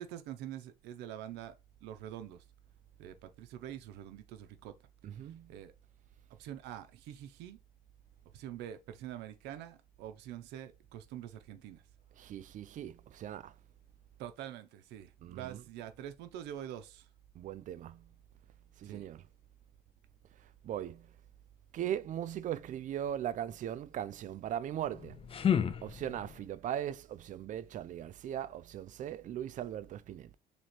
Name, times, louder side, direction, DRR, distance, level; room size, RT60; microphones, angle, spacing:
voice 1, 0.0-1.5 1.8-2.4 3.0-4.7 5.1-5.7 6.4-7.6 8.3-11.8 14.2-17.1 18.8-19.1, right 11 dB, 90° right, 0.6 m, -45 dB
voice 2, 5.0-5.5 12.2-13.5 15.2-15.6 17.4-18.0 18.8-19.2 20.6-21.1 21.7-25.2 25.8-30.4, right 10 dB, 50° right, 0.4 m, -39 dB
sound 1, 24.8-26.5, left 8 dB, 35° left, 0.5 m, -32 dB
3.1 x 2.9 x 4.2 m
cardioid pair, 110°, 17 cm